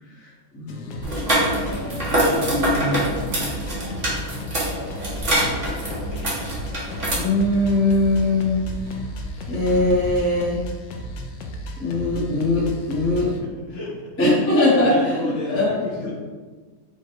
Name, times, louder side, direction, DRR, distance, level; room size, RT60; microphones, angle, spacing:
voice 1, 0.5-1.0 2.3-3.1 7.2-8.6 9.5-10.6 11.8-13.3 14.2-15.7 16.0-16.1, left 2 dB, 15° left, -6 dB, 0.6 m, -21 dB
sound 1, 0.7-13.4, equal, 80° left, 0.7 m, -34 dB
sound 2, 1.0-7.1, right 1 dB, 30° right, 1.4 m, -24 dB
Drum kit, 5.2-10.5, left 1 dB, 60° right, 1.6 m, -38 dB
voice 2, 13.4-14.1 14.7-16.1, equal, 60° left, -5 dB, 1.2 m, -32 dB
5.0 x 2.1 x 4.5 m, 1.4 s
omnidirectional pair, 1.9 m